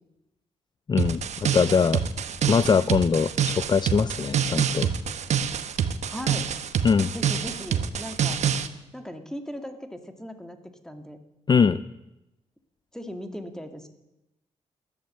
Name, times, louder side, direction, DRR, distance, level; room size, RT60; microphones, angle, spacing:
voice 1, 0.9-1.2 1.5-2.0 2.5-4.9 6.8-7.1 11.5-11.8, left 5 dB, 35° left, 16 dB, 0.5 m, -21 dB
sound 1, 1.0-8.7, right 8 dB, 70° right, 1.2 m, -26 dB
voice 2, 6.1-6.5 7.1-8.4 8.9-11.2 12.9-13.9, equal, 5° left, 6 dB, 2.3 m, -38 dB
14.5 x 11.5 x 7.8 m, 0.95 s
cardioid pair, 70°, 12 cm